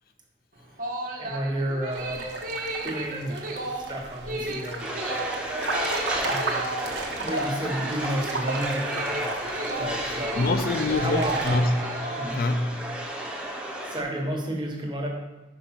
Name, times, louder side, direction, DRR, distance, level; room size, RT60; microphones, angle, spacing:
sound 1, 0.5-12.7, right 1 dB, 50° right, 1.2 m, -34 dB
voice 1, 1.2-2.2 2.8-4.8 6.2-6.7 7.2-9.3 9.8-10.6 11.0-11.4 12.2-12.4 13.8-15.1, right 1 dB, 25° right, 0 dB, 1.2 m, -31 dB
sound 2, 1.9-11.6, right 2 dB, 80° right, 1.0 m, -35 dB
sound 3, 4.8-14.0, right 1 dB, 5° right, 0.8 m, -33 dB
voice 2, 10.4-12.0 12.3-12.7, left 2 dB, 55° left, 8 dB, 0.4 m, -25 dB
5.3 x 5.2 x 5.8 m, 1.0 s
head